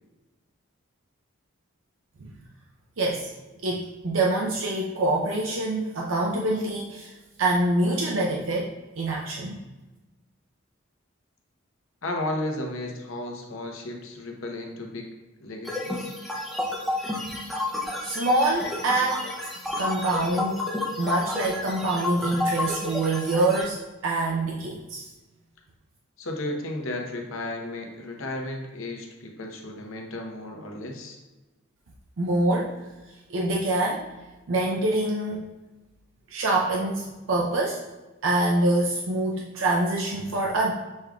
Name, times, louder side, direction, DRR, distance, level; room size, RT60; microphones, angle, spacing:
voice 1, 3.0-3.3 3.6-7.1 7.4-9.6 18.0-19.3 19.8-20.6 21.0-25.1 32.2-32.8 33.3-34.1 34.5-35.4 36.3-37.8 38.2-40.7, right 2 dB, 70° right, -1 dB, 0.5 m, -25 dB
voice 2, 12.0-15.1 15.4-16.1 26.2-31.2, left 1 dB, 75° left, 2 dB, 0.8 m, -34 dB
sound 1, 15.7-23.6, left 2 dB, ahead, 0.5 m, -31 dB
6.4 x 3.6 x 2.3 m, 1.1 s
head